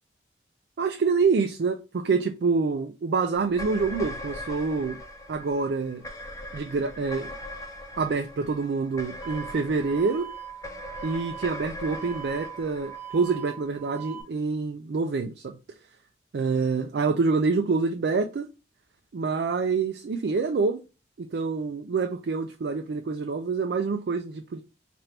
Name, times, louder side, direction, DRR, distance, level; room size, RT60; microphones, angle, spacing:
voice 1, 0.8-5.0 5.3-6.0 6.5-7.3 8.0-10.3 11.0-15.6 16.3-18.5 19.1-20.8 21.2-24.6, right 4 dB, 70° right, 0.4 m, -26 dB
sound 1, 3.5-14.0, left 1 dB, 20° left, 0.6 m, -40 dB
sound 2, 9.2-14.2, right 10 dB, 10° right, 0.9 m, -41 dB
3.3 x 2.5 x 4.3 m
head